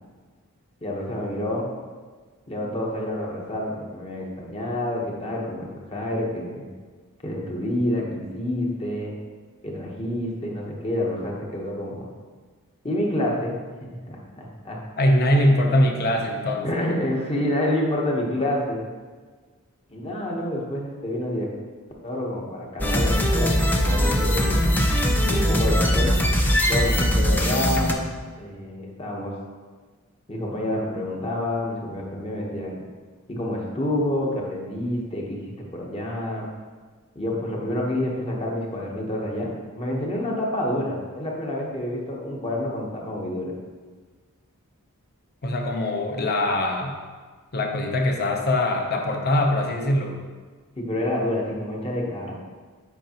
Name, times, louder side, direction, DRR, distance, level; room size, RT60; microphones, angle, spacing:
voice 1, 0.8-1.7 2.5-6.7 7.2-9.1 9.6-12.1 12.8-13.5 13.8-14.8 16.6-18.8 19.9-21.5 22.0-24.6 25.2-26.1 26.7-28.0 28.4-29.4 30.3-32.9 33.3-35.4 35.7-36.5 37.1-39.5 39.7-43.5 50.8-52.3, left 1 dB, 25° left, -2 dB, 1.1 m, -28 dB
voice 2, 15.0-16.7 45.4-47.0 47.5-50.2, left 1 dB, 45° left, 2 dB, 0.8 m, -22 dB
sound 1, 22.8-27.9, equal, 10° left, 0.5 m, -21 dB
8.1 x 5.1 x 3.0 m, 1.5 s
head